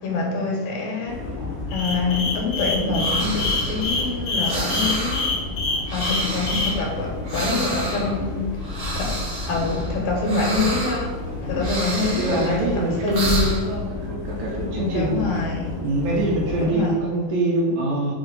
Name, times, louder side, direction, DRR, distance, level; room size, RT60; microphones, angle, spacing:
voice 1, 0.0-1.4 1.7-5.5 5.9-8.6 8.9-13.5 14.9-15.8 16.6-17.0, left 3 dB, 80° left, 2.9 m, -26 dB
sound 1, 1.1-16.7, left 3 dB, 45° left, 1.8 m, -32 dB
sound 2, 1.7-6.7, left 3 dB, 60° left, 2.2 m, -25 dB
sound 3, 2.6-13.7, right 1 dB, 50° right, 1.1 m, -30 dB
voice 2, 12.2-15.3 15.8-18.1, right 1 dB, 75° right, 1.9 m, -24 dB
7.7 x 2.7 x 5.2 m
omnidirectional pair, 3.9 m